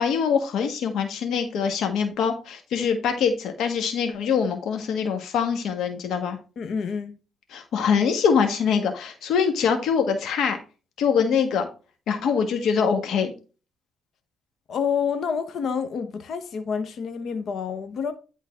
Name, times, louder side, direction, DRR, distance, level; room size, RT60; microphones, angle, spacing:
voice 1, 0.0-6.4 7.5-10.6 11.0-11.7 12.1-13.3, left 6 dB, 75° left, 1.5 m, -23 dB
voice 2, 6.6-7.2 14.7-18.1, left 6 dB, 60° left, 1.1 m, -28 dB
11.0 x 4.0 x 3.7 m
cardioid pair, 90°, 0 cm